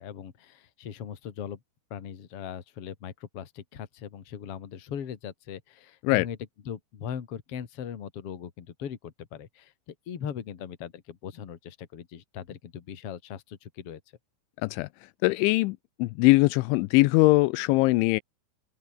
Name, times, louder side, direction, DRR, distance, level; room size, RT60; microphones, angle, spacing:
voice 1, 0.0-1.6 1.9-6.4 6.7-14.0, left 8 dB, 40° left, 2.3 m, -39 dB
voice 2, 15.2-18.2, left 22 dB, 85° left, 2.9 m, -21 dB
open air
omnidirectional pair, 5.5 m